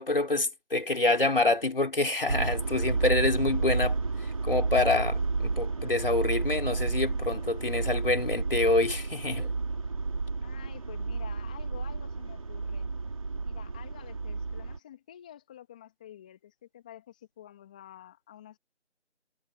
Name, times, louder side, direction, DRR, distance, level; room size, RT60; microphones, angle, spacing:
voice 1, 0.0-9.5, left 2 dB, 50° left, 4.0 m, -27 dB
sound 1, 2.3-14.8, right 3 dB, 30° right, 3.8 m, -31 dB
voice 2, 10.4-12.9 13.4-18.6, left 11 dB, 5° left, 2.5 m, -49 dB
figure-of-eight pair, 170°, 35 cm